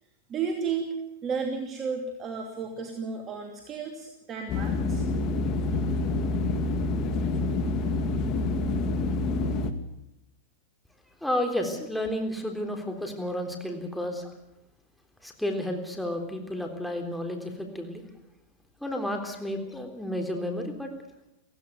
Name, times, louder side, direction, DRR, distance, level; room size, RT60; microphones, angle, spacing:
voice 1, 0.3-5.0, right 5 dB, 30° right, 3 dB, 2.9 m, -33 dB
sound 1, 4.5-9.7, left 3 dB, 40° left, 2.1 m, -27 dB
voice 2, 11.2-14.3 15.2-18.0 18.8-20.9, left 1 dB, 5° left, 3 dB, 3.6 m, -31 dB
17.0 x 16.0 x 9.4 m, 0.85 s
hypercardioid pair, 110°, 0 cm